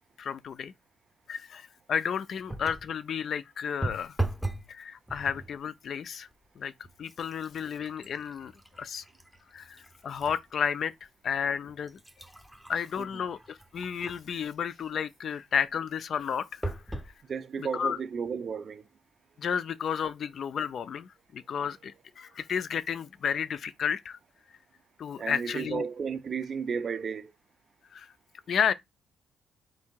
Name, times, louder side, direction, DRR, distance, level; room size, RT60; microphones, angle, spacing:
voice 1, 0.2-0.7 1.3-4.2 4.7-6.3 6.6-6.7 7.0-8.5 8.8-9.0 9.5-10.9 11.2-12.0 12.7-17.0 17.7-18.0 19.4-24.2 25.0-25.8 27.9-28.1 28.5-28.7, left 7 dB, 60° left, 0.3 m, -32 dB
sound 1, 2.5-2.9 3.8-4.7 5.1-5.6 6.3-6.5 6.8-10.4 10.9-11.0 11.7-14.4 16.6-17.1 17.8-17.9 18.2-18.3, right 2 dB, 5° right, 0.6 m, -38 dB
voice 2, 17.2-18.9 21.5-21.6 22.3-22.4 25.2-27.3, right 6 dB, 45° right, 0.5 m, -34 dB
3.6 x 2.7 x 4.4 m
cardioid pair, 90°, 0 cm